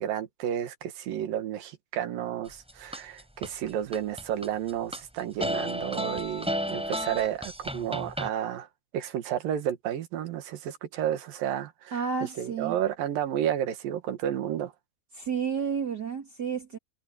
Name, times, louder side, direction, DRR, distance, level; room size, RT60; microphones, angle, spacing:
voice 1, 0.0-8.7 8.9-12.0 12.4-14.7, right 10 dB, 80° right, 3.2 m, -31 dB
sound 1, 2.5-3.5 3.9-5.0 5.4-8.3, equal, ahead, 6.4 m, -32 dB
voice 2, 11.9-12.8 15.1-16.8, right 6 dB, 35° right, 2.1 m, -31 dB
omnidirectional pair, 4.1 m